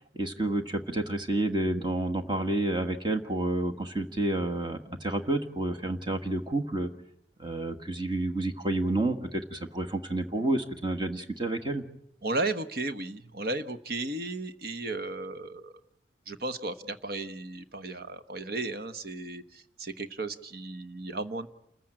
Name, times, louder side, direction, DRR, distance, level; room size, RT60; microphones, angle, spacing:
voice 1, 0.0-6.9 7.4-11.8, right 2 dB, 25° right, 6 dB, 1.5 m, -30 dB
voice 2, 12.2-15.7 16.3-21.5, right 2 dB, 55° right, 10 dB, 1.2 m, -34 dB
28.0 x 15.0 x 8.9 m, 0.79 s
head